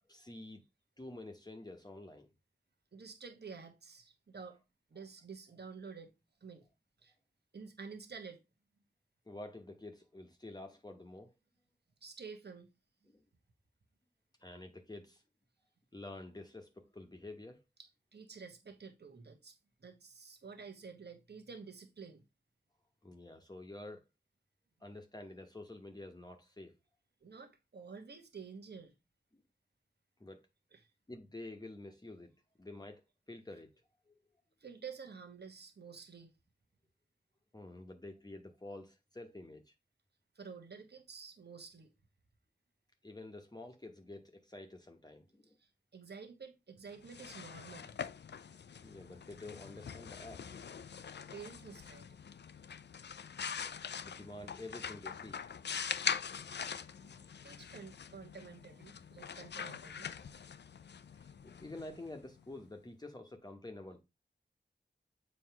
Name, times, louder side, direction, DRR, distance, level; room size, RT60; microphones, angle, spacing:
voice 1, 0.1-0.6 1.0-2.3 9.3-11.3 13.1-13.2 14.4-15.2 15.9-17.6 23.0-24.0 24.8-26.7 29.3-29.4 30.2-30.5 31.1-33.0 33.3-33.7 34.1-34.2 37.5-39.7 43.0-45.6 48.8-50.6 54.0-55.4 61.2-64.0, left 2 dB, 20° left, 1.0 m, -49 dB
voice 2, 2.9-4.6 4.9-6.1 6.4-6.7 7.0-7.1 7.5-8.4 12.0-12.7 17.8-22.2 27.2-28.9 30.7-30.8 34.6-36.3 40.3-41.9 45.6-47.9 51.3-52.1 57.0-60.1, right 5 dB, 70° right, 1.2 m, -50 dB
sound 1, 46.9-62.6, left 7 dB, 75° left, 0.5 m, -43 dB
7.6 x 3.1 x 5.7 m
wide cardioid pair, 65°, 18 cm